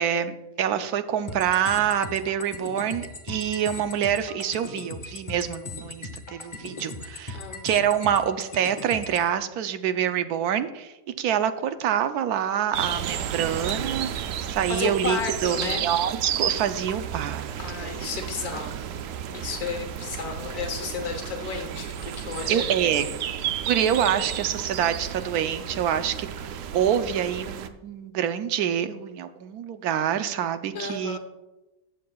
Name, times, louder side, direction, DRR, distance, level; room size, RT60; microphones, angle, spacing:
voice 1, 0.0-7.4 7.6-14.1 14.4-17.5 17.8-17.9 18.5-18.7 22.5-23.1 23.7-31.2, right 9 dB, 85° right, 10 dB, 1.1 m, -26 dB
sound 1, 1.3-9.3, left 2 dB, 25° left, 0.7 m, -38 dB
sound 2, 12.7-27.7, right 9 dB, 70° right, 0.9 m, -32 dB
voice 2, 14.7-15.8 17.6-18.8 19.3-22.7 30.7-31.2, left 5 dB, 85° left, 4 dB, 1.5 m, -32 dB
14.5 x 7.5 x 2.3 m, 1.0 s
omnidirectional pair, 1.6 m